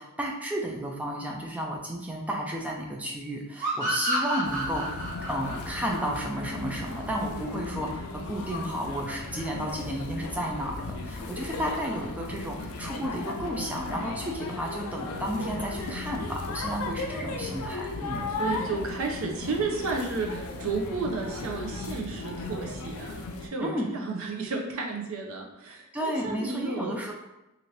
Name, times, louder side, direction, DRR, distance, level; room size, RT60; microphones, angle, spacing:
voice 1, 0.0-5.0 5.3-18.2 23.6-23.9 25.7-27.1, equal, 5° right, -1 dB, 0.4 m, -32 dB
sound 1, 3.6-7.0, right 1 dB, 40° right, 0.9 m, -30 dB
sound 2, 4.4-23.5, left 3 dB, 80° left, 0.4 m, -36 dB
voice 2, 18.1-27.1, right 3 dB, 65° right, 1 dB, 0.5 m, -32 dB
2.8 x 2.5 x 3.1 m, 0.96 s
head